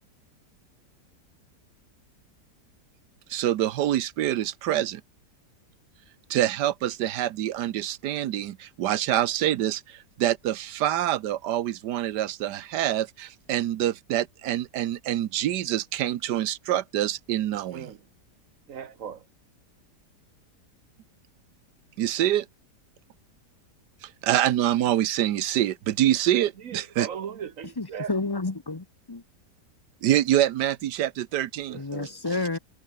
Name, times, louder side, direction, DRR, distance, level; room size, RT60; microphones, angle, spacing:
voice 1, 3.3-5.0 6.3-17.9 22.0-22.5 24.0-27.1 30.0-31.8, right 12 dB, 75° right, 1.4 m, -26 dB
voice 2, 17.7-18.1 18.7-19.3 26.6-28.1 31.7-32.2, right 8 dB, 55° right, 1.2 m, -38 dB
voice 3, 27.8-29.2 31.7-32.6, left 3 dB, 15° left, 0.9 m, -30 dB
omnidirectional pair, 1.8 m